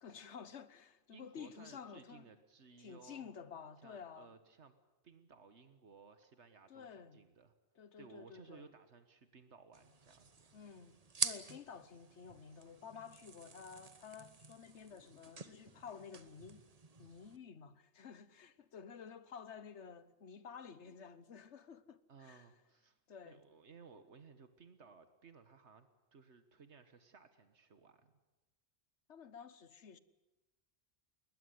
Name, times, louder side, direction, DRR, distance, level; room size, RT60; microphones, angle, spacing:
voice 1, 0.0-2.3 2.8-4.3 6.7-7.2 7.7-8.7 10.5-10.9 11.2-16.6 17.0-22.5 23.1-23.4 29.1-30.0, left 6 dB, 80° left, 1.4 m, -52 dB
voice 2, 1.1-3.3 3.8-4.7 5.0-7.5 8.0-10.6 22.1-23.0 23.2-28.1, right 5 dB, 80° right, 1.7 m, -59 dB
sound 1, 9.7-17.4, right 4 dB, 35° right, 1.2 m, -46 dB
21.5 x 20.0 x 9.4 m
omnidirectional pair, 1.2 m